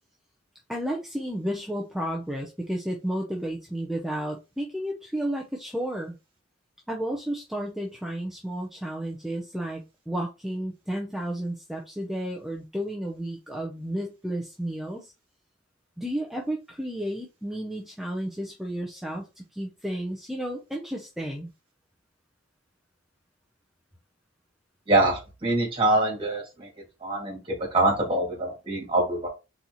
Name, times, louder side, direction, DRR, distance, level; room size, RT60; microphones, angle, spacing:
voice 1, 0.7-6.1 6.9-15.1 16.0-21.5, right 1 dB, ahead, -1 dB, 0.6 m, -32 dB
voice 2, 24.9-26.7 27.0-29.3, right 2 dB, 25° right, -1 dB, 2.3 m, -24 dB
4.2 x 4.1 x 3.0 m, 0.27 s
head